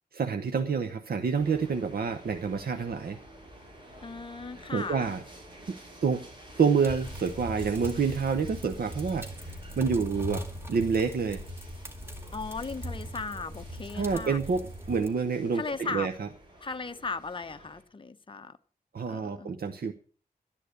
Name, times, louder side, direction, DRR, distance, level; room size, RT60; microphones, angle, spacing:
voice 1, 0.1-3.2 4.7-5.2 5.7-5.8 6.0-6.2 6.6-9.3 9.8-10.4 10.7-11.4 13.9-14.6 14.9-16.3 18.9-19.9, right 5 dB, 85° right, 0.9 m, -28 dB
sound 1, 1.4-17.8, right 1 dB, 30° right, 5.5 m, -51 dB
voice 2, 4.0-5.1 12.3-14.4 15.5-16.1 16.6-18.6 19.1-19.5, left 4 dB, 35° left, 0.8 m, -37 dB
sound 2, 6.8-15.1, equal, 15° right, 2.1 m, -40 dB
12.5 x 10.5 x 6.5 m
wide cardioid pair, 110°, 15 cm